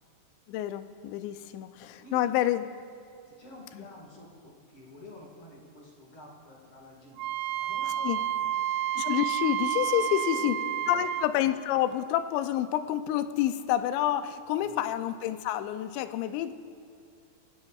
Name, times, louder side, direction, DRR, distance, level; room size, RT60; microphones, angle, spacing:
voice 1, 0.5-2.7 3.8-3.9 8.0-8.2 8.9-16.5, left 12 dB, 85° left, 11 dB, 2.9 m, -28 dB
voice 2, 3.3-8.2 8.5-8.8 10.0-10.9 14.6-14.8, left 1 dB, 50° left, -2 dB, 1.7 m, -50 dB
Wind instrument woodwind instrument, 7.2-11.3, right 11 dB, 85° right, 2.3 m, -30 dB
25.0 x 17.5 x 2.4 m, 2.3 s
omnidirectional pair, 5.0 m